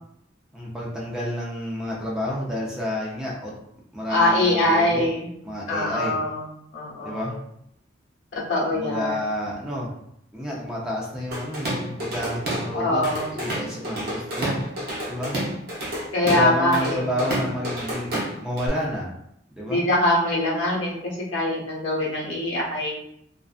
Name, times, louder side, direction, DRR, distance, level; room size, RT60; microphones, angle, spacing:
voice 1, 0.5-3.5 3.9-5.1 5.4-6.2 7.0-7.4 8.7-10.0 10.3-13.0 13.3-14.6 15.1-15.4 16.2-19.1 19.5-19.8, left 1 dB, 5° right, -5 dB, 0.5 m, -30 dB
voice 2, 4.1-5.3 5.7-6.4 6.7-7.2 8.5-9.2 12.7-13.4 16.1-17.1 19.7-21.0 21.3-23.0, left 1 dB, 80° left, -4 dB, 0.9 m, -23 dB
Drum kit / Drum, 11.3-12.7 13.0-18.7, right 1 dB, 55° right, 0.7 m, -29 dB
2.4 x 2.3 x 2.3 m, 0.74 s
head